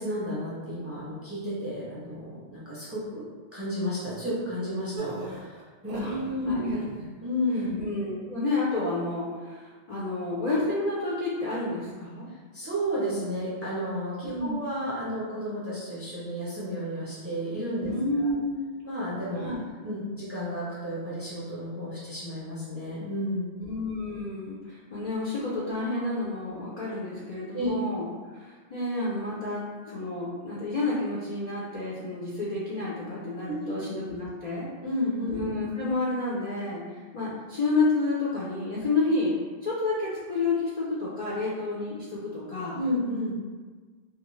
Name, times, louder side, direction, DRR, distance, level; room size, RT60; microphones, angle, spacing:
voice 1, 0.0-3.2 3.5-6.7 7.2-7.8 12.5-17.9 18.2-18.3 18.8-19.4 19.8-23.6 27.5-27.7 33.5-33.7 34.8-35.3 42.7-43.3, equal, 15° right, -8 dB, 0.5 m, -32 dB
sound 1, 5.0-6.3 6.6-7.1, right 3 dB, 60° right, 0.7 m, -37 dB
voice 2, 6.5-6.8 7.5-12.3 14.3-14.7 17.8-18.7 19.4-19.7 23.6-28.0 28.3-34.7 35.3-39.3 39.6-42.8, left 2 dB, 55° left, -7 dB, 0.5 m, -30 dB
2.5 x 2.3 x 3.0 m, 1.4 s
omnidirectional pair, 1.1 m